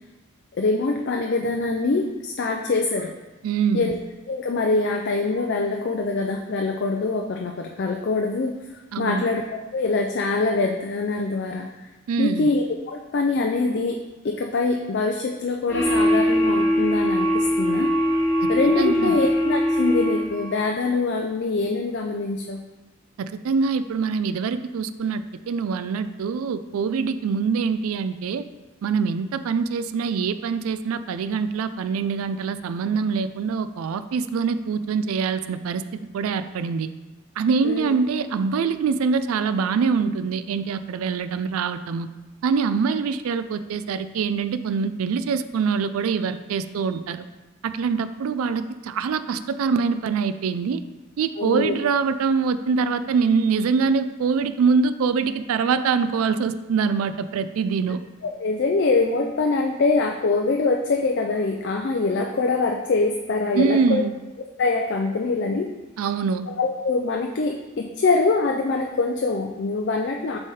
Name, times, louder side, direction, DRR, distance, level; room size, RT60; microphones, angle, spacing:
voice 1, 0.6-3.1 3.7-4.0 4.3-8.5 9.0-11.7 12.2-14.0 14.2-17.9 18.5-22.6 37.6-37.9 51.4-51.7 58.2-64.0 64.6-65.7 66.6-70.4, left 3 dB, 50° left, 2 dB, 0.4 m, -24 dB
voice 2, 3.4-3.9 8.9-9.3 12.1-12.5 18.4-18.5 18.8-19.2 23.2-28.4 28.8-35.9 36.1-36.9 37.4-42.1 42.4-47.2 47.6-50.8 51.2-58.0 63.5-64.1 66.0-66.5, right 5 dB, 80° right, 12 dB, 0.3 m, -24 dB
sound 1, 15.7-20.5, equal, 10° left, 1.5 m, -21 dB
7.1 x 3.4 x 4.2 m, 1.1 s
head